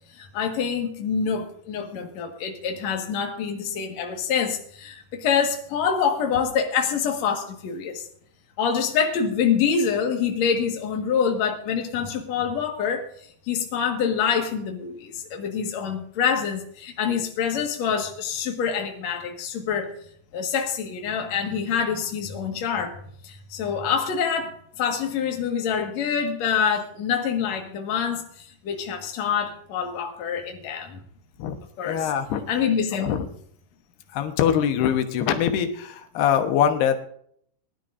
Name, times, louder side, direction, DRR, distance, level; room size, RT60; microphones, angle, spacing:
voice 1, 0.2-8.0 8.6-13.0 13.5-19.9 20.3-23.0 23.2-31.0 31.8-32.1 32.5-33.1, left 7 dB, 55° left, 2 dB, 2.5 m, -26 dB
voice 2, 31.8-32.4 33.0-33.3 34.1-37.0, left 9 dB, 90° left, 7 dB, 3.2 m, -23 dB
21.5 x 11.0 x 2.6 m, 0.63 s
omnidirectional pair, 4.5 m